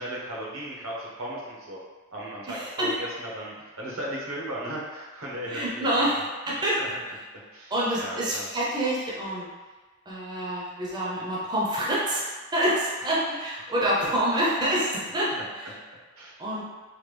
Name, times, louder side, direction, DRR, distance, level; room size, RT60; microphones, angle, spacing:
voice 1, 0.0-1.8 2.1-5.9 6.8-6.9 7.5-7.7 8.0-8.5 14.3-14.4 15.3-15.4 16.2-16.3, right 1 dB, 80° right, -4 dB, 0.8 m, -36 dB
voice 2, 2.5-3.0 5.5-6.8 7.7-9.5 10.1-12.2 12.5-15.7 16.4-16.6, right 1 dB, 20° right, -6 dB, 0.5 m, -27 dB
3.1 x 2.2 x 3.2 m, 1.3 s
head